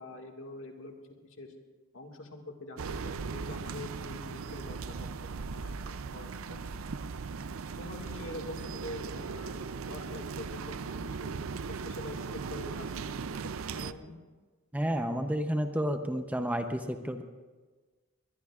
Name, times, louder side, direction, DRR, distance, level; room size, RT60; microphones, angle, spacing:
voice 1, 0.0-1.5 1.9-6.7 7.0-7.2 7.8-11.3 11.7-13.1 13.4-14.2, left 2 dB, 70° left, 2 dB, 1.9 m, -45 dB
sound 1, 2.8-13.9, right 5 dB, 85° right, 0.5 m, -38 dB
voice 2, 14.7-17.2, equal, 10° right, 6 dB, 0.7 m, -31 dB
21.5 x 21.5 x 2.4 m, 1.3 s
head